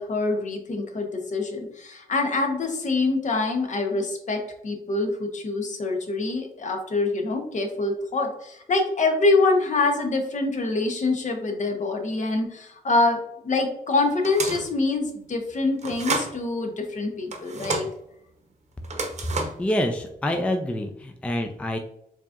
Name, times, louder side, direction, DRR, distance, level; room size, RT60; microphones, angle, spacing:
voice 1, 0.0-13.2 13.4-17.9, left 3 dB, 50° left, 4 dB, 0.8 m, -25 dB
sound 1, 14.2-14.7 15.8-16.3 17.3-17.9 18.8-19.7, right 3 dB, 45° right, 0.8 m, -29 dB
voice 2, 19.3-21.8, left 1 dB, 10° left, 3 dB, 0.4 m, -27 dB
4.6 x 2.8 x 2.4 m, 0.77 s
cardioid pair, 95°, 16 cm